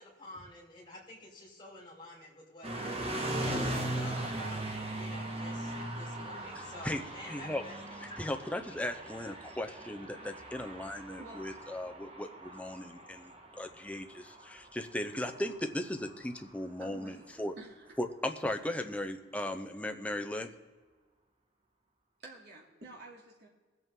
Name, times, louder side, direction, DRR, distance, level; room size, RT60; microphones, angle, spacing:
voice 1, 0.0-8.4 8.7-8.8, left 1 dB, 25° left, -3 dB, 3.2 m, -50 dB
sound 1, 2.6-16.6, right 1 dB, 30° right, 1.4 m, -39 dB
voice 2, 7.3-7.6 8.0-17.5 18.0-20.5, left 1 dB, 5° left, 6 dB, 0.6 m, -37 dB
voice 3, 16.8-17.9 22.2-23.5, right 2 dB, 60° right, -2 dB, 2.8 m, -50 dB
20.0 x 8.1 x 3.7 m, 1.3 s
head